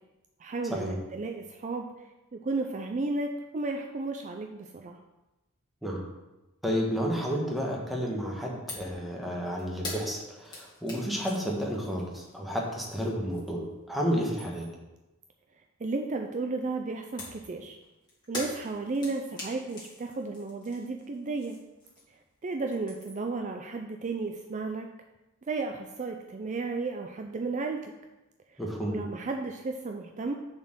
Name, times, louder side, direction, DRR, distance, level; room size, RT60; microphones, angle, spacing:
voice 1, 0.4-1.9 2.3-5.0 15.8-17.8 18.3-21.6 22.4-24.9 25.5-27.9 28.5-28.6 28.9-30.4, right 3 dB, 35° right, 4 dB, 0.4 m, -33 dB
voice 2, 6.6-14.7 28.6-29.0, equal, ahead, -2 dB, 1.3 m, -31 dB
sound 1, 8.7-9.0 9.2-13.7 14.1-14.8 17.2-22.3 22.6-23.3, left 2 dB, 20° left, 2.1 m, -44 dB
6.7 x 4.4 x 6.0 m, 1.0 s
head